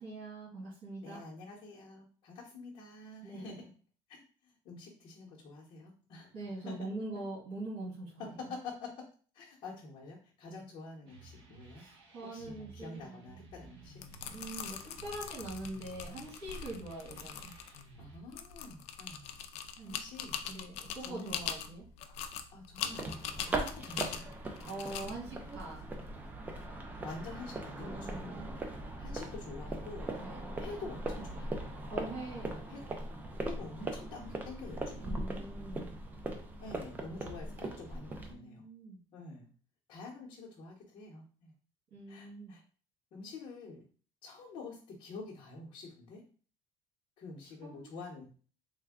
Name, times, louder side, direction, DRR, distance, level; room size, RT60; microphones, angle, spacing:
voice 1, 0.0-1.2 3.2-3.5 6.3-8.5 10.5-10.6 11.8-13.0 14.3-17.5 19.8-20.0 20.5-21.9 24.6-25.8 27.8-28.4 30.2-30.6 31.9-32.6 35.0-36.0 38.2-39.0 41.9-42.6 47.6-47.9, right 2 dB, 70° right, -6 dB, 1.8 m, -43 dB
voice 2, 1.0-3.7 4.1-6.4 6.6-6.9 7.1-7.2 8.2-8.9 9.3-11.8 12.2-14.0 18.0-19.3 19.8-20.4 21.0-21.4 22.5-23.1 23.4-24.4 27.0-28.6 29.0-30.1 30.5-31.6 32.5-32.8 33.4-35.2 36.6-38.6 39.1-39.5 39.9-41.5 42.1-42.6 43.1-43.8 44.2-46.2 47.2-48.3, left 3 dB, 45° left, -6 dB, 0.8 m, -47 dB
sound 1, 11.1-18.2, right 3 dB, 40° right, 0.9 m, -55 dB
sound 2, 13.8-26.6, left 8 dB, 65° left, 0.4 m, -43 dB
sound 3, 22.8-38.3, right 2 dB, 15° right, 0.4 m, -40 dB
3.4 x 2.2 x 3.5 m, 0.40 s
cardioid pair, 170°, 12 cm